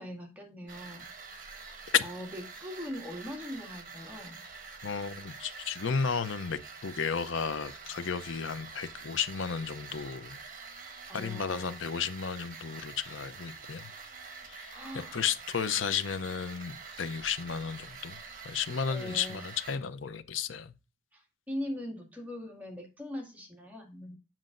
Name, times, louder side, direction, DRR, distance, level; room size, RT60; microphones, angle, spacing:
voice 1, 0.0-1.5 2.0-4.4 11.1-11.9 14.7-15.2 18.9-19.5 21.1-24.2, left 1 dB, 10° right, 2.1 m, -41 dB
sound 1, 0.7-19.8, right 4 dB, 45° right, 1.3 m, -46 dB
voice 2, 4.8-10.4 11.1-13.9 14.4-14.7 15.1-18.2 18.4-20.7, left 6 dB, 85° left, 0.7 m, -33 dB
7.5 x 7.4 x 2.6 m
head